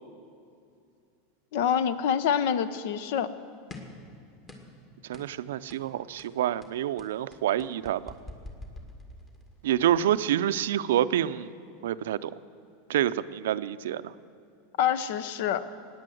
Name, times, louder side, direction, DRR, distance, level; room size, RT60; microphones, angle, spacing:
voice 1, 1.5-3.3 14.8-15.6, left 8 dB, 70° left, 15 dB, 0.8 m, -26 dB
sound 1, 3.7-4.0 4.5-4.8 5.1-5.3 5.7-5.9 6.2-9.5, left 2 dB, 20° left, 2.0 m, -45 dB
voice 2, 5.1-8.1 9.6-11.5 11.8-12.3 12.9-14.1, right 11 dB, 85° right, 14 dB, 0.5 m, -27 dB
17.0 x 9.9 x 7.8 m, 2.5 s
supercardioid pair, 125°, 0 cm